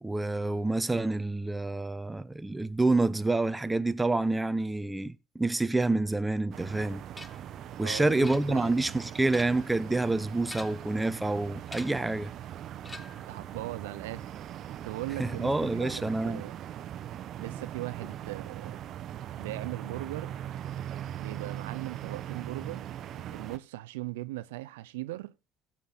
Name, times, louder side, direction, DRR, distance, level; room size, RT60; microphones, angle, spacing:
voice 1, 0.0-7.0 7.8-12.3 15.2-16.4, right 2 dB, 10° right, 0.8 m, -28 dB
sound 1, 6.5-23.6, right 10 dB, 55° right, 0.8 m, -40 dB
sound 2, 7.2-7.5 8.2-8.8 9.2-9.8 10.4-11.0 11.7-12.1 12.8-13.3, left 2 dB, 15° left, 1.1 m, -45 dB
voice 2, 7.8-8.8 13.1-14.3 14.7-16.6 17.4-18.8 19.4-20.3 21.2-22.9 23.2-25.3, right 17 dB, 85° right, 0.5 m, -39 dB
16.0 x 7.5 x 4.0 m
supercardioid pair, 85°, 0 cm